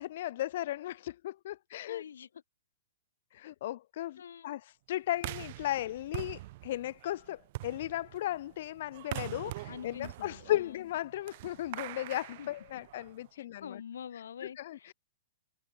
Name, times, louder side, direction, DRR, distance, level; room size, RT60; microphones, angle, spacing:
voice 1, 0.0-2.0 3.3-13.8 14.1-14.2 14.6-14.9, left 14 dB, 55° left, 0.8 m, -36 dB
voice 2, 1.9-2.3 4.2-4.5 9.7-10.8 12.4-12.5 13.3-14.9, left 8 dB, 70° left, 5.1 m, -46 dB
sound 1, 5.1-13.3, right 18 dB, 50° right, 1.8 m, -44 dB
hypercardioid pair, 125°, 0 cm